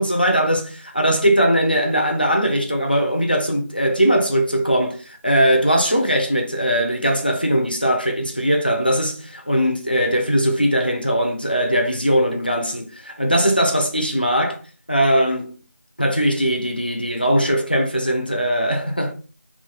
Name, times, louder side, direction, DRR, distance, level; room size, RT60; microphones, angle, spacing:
voice 1, 0.0-14.6 14.9-15.5 16.0-19.1, equal, 30° left, 0.4 m, -20 dB
2.3 x 2.3 x 2.8 m
figure-of-eight pair, 180°, 9 cm